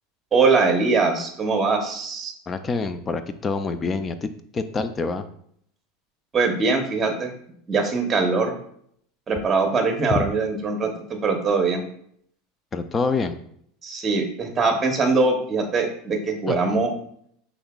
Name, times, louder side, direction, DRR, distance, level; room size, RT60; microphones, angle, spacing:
voice 1, 0.3-2.3 6.3-7.3 7.7-8.6 9.3-11.8 13.8-16.9, right 4 dB, 25° right, 4 dB, 0.9 m, -22 dB
voice 2, 2.5-5.3 10.1-10.2 12.7-13.4 16.5-16.8, left 4 dB, 25° left, 10 dB, 0.4 m, -26 dB
5.6 x 3.5 x 2.3 m, 0.65 s
supercardioid pair, 125°, 0 cm